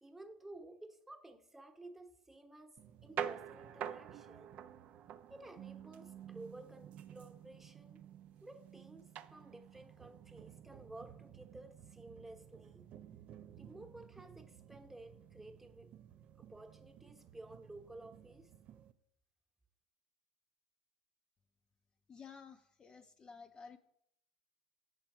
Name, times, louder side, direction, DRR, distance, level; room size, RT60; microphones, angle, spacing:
voice 1, 0.0-4.6 5.3-8.1 8.4-12.9 13.5-15.9 16.4-18.5, right 2 dB, 10° right, 1.0 m, -54 dB
sound 1, 2.8-18.9, right 9 dB, 45° right, 0.4 m, -50 dB
voice 2, 22.1-23.8, left 5 dB, 25° left, 0.5 m, -53 dB
7.8 x 5.9 x 5.4 m
figure-of-eight pair, 65°, 3 cm